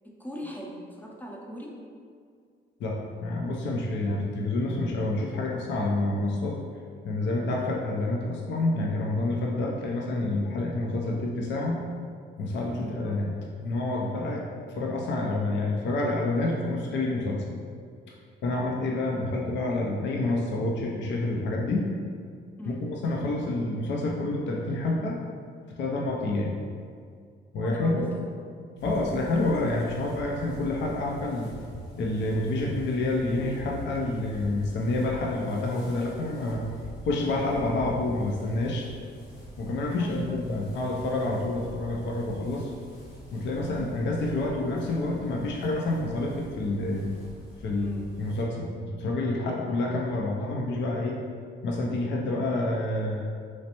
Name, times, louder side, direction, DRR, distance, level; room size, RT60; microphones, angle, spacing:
voice 1, 0.0-1.8 12.8-13.1 22.6-22.9 27.6-28.1 40.0-40.3 47.7-48.1, equal, 10° left, -1 dB, 0.6 m, -40 dB
voice 2, 2.8-6.6 7.0-11.8 12.4-13.3 13.6-17.4 18.1-18.2 18.4-21.9 22.7-25.2 25.7-26.5 27.5-28.1 28.8-31.5 32.0-36.7 37.0-38.9 39.6-42.7 43.3-47.1 47.6-47.9 48.2-51.2 51.6-53.2, left 2 dB, 65° left, -2 dB, 0.5 m, -28 dB
sound 1, 28.8-48.4, equal, 85° left, 1.2 m, -44 dB
3.2 x 3.1 x 2.9 m, 2.2 s
cardioid pair, 90°, 20 cm